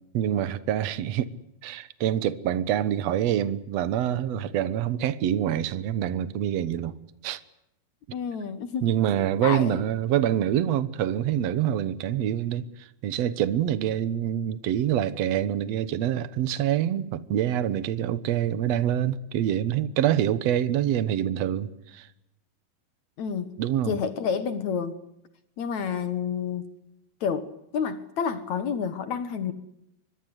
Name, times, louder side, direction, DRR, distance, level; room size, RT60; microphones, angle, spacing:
voice 1, 0.1-1.3 1.6-7.0 7.2-7.4 8.8-22.1 23.6-24.0, right 10 dB, 65° right, 1.8 m, -26 dB
voice 2, 8.1-8.9 9.4-9.8 23.2-25.0 25.6-26.7 27.2-29.5, left 6 dB, 60° left, 2.3 m, -29 dB
25.0 x 21.5 x 8.0 m
omnidirectional pair, 4.4 m